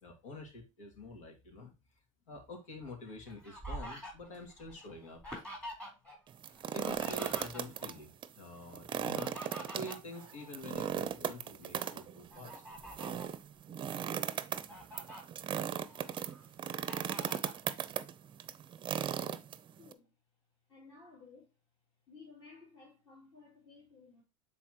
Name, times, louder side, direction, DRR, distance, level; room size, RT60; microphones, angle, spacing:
voice 1, 0.0-1.7 2.3-5.2 6.7-9.4 9.7-12.8, left 2 dB, 80° left, 2.5 m, -47 dB
Fowl, 2.8-6.2 6.4-8.0 8.9-11.0 11.5-11.7 12.3-13.4 14.0-14.1 14.4-15.2 15.7-16.4 16.9-17.6, equal, 5° left, 3.9 m, -47 dB
sound 1, 6.3-7.9 8.2-8.3 8.7-19.9, right 9 dB, 30° right, 0.7 m, -37 dB
voice 2, 19.8-20.1 20.7-21.5 22.1-24.2, left 4 dB, 30° left, 2.7 m, -56 dB
8.7 x 4.1 x 2.9 m
supercardioid pair, 105°, 17 cm